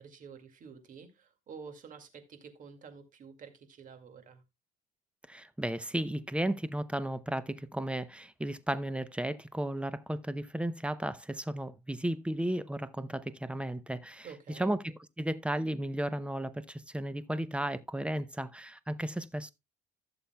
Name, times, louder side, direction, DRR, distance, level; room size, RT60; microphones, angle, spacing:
voice 1, 0.0-4.4 14.2-14.7, right 6 dB, 50° right, 2.1 m, -49 dB
voice 2, 5.3-14.3 14.6-14.8 15.2-19.5, right 1 dB, 5° right, 0.6 m, -34 dB
15.5 x 7.0 x 2.3 m
cardioid pair, 110°, 17 cm